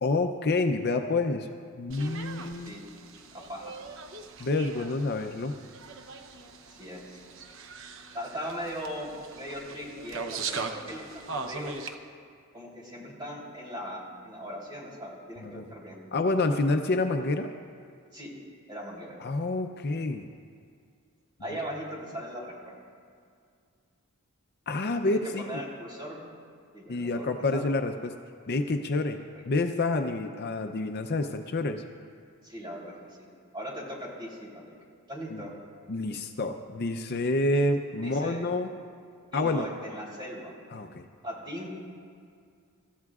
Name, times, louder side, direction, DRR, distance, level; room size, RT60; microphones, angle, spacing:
voice 1, 0.0-1.5 1.8-2.7 4.4-5.5 15.4-15.6 16.1-17.5 19.2-20.3 24.7-25.6 26.9-28.1 28.5-29.2 29.5-31.8 35.3-35.4 35.9-38.7 39.3-39.7 40.7-41.0, left 2 dB, 45° left, 6 dB, 0.6 m, -28 dB
sound 1, 1.9-12.0, right 4 dB, 60° right, 0.8 m, -40 dB
voice 2, 3.3-3.7 6.7-7.2 8.1-11.8 12.5-16.0 18.1-18.3 18.7-19.1 21.4-22.8 25.0-26.4 26.7-27.3 27.5-27.7 29.3-29.4 32.4-33.3 33.5-34.7 35.1-35.5 37.9-38.4 39.3-40.5 41.2-41.7, equal, 20° right, -4 dB, 3.4 m, -39 dB
26.0 x 14.0 x 2.4 m, 2.2 s
head